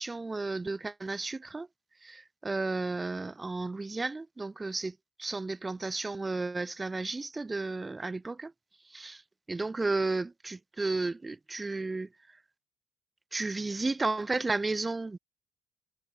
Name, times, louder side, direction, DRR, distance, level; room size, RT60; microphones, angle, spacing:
voice 1, 0.0-1.7 2.0-8.5 8.9-9.2 9.5-12.1 13.3-15.2, right 3 dB, 20° right, 1.8 m, -33 dB
supercardioid pair, 65°, 0 cm